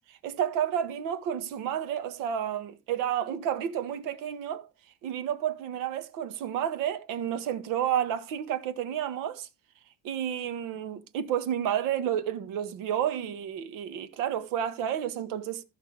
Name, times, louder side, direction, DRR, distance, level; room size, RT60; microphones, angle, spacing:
voice 1, 0.2-4.7 5.0-9.5 10.0-15.6, right 9 dB, 90° right, 1.6 m, -31 dB
14.5 x 5.8 x 4.7 m
cardioid pair, 165°, 32 cm